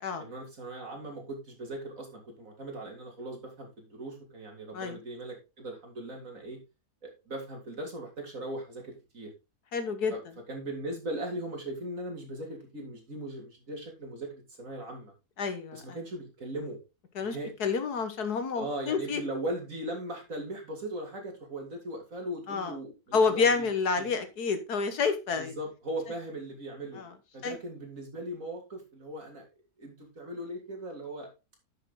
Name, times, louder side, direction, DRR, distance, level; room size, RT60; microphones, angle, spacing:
voice 1, 0.2-6.6 7.0-9.3 10.1-10.2 10.5-15.1 15.7-16.8 17.2-17.5 18.5-23.7 24.0-24.1 25.4-27.0 27.3-29.4 29.8-31.3, right 1 dB, 60° right, 1 dB, 3.3 m, -39 dB
voice 2, 9.7-10.1 15.4-15.8 17.2-19.2 22.5-22.7 23.1-25.5 27.0-27.1 27.4-27.6, left 5 dB, 85° left, 9 dB, 2.0 m, -29 dB
10.0 x 6.6 x 3.8 m, 0.26 s
omnidirectional pair, 1.6 m